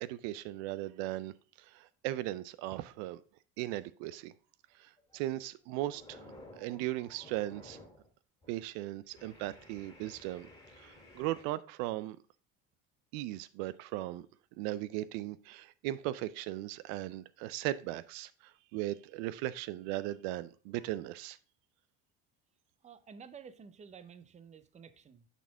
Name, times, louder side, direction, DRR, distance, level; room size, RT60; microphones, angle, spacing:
voice 1, 0.0-1.3 1.6-3.2 3.6-4.3 4.8-6.2 6.5-7.8 8.5-10.5 10.8-12.2 13.1-14.3 14.6-21.4, right 15 dB, 85° right, 0.5 m, -38 dB
sound 1, 5.0-5.3 5.6-8.1 8.4-8.6 9.1-11.4, left 1 dB, 10° left, 2.1 m, -55 dB
voice 2, 22.8-25.3, right 6 dB, 20° right, 0.5 m, -52 dB
9.1 x 4.3 x 3.4 m
supercardioid pair, 105°, 33 cm